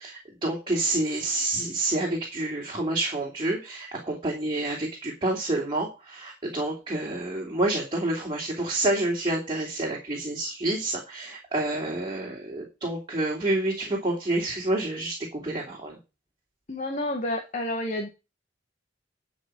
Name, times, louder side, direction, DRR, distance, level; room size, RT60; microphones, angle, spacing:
voice 1, 0.0-16.0, right 2 dB, 25° right, -3 dB, 3.1 m, -28 dB
voice 2, 16.7-18.1, left 1 dB, 40° left, 3 dB, 1.7 m, -29 dB
12.5 x 5.2 x 6.3 m, 0.28 s
head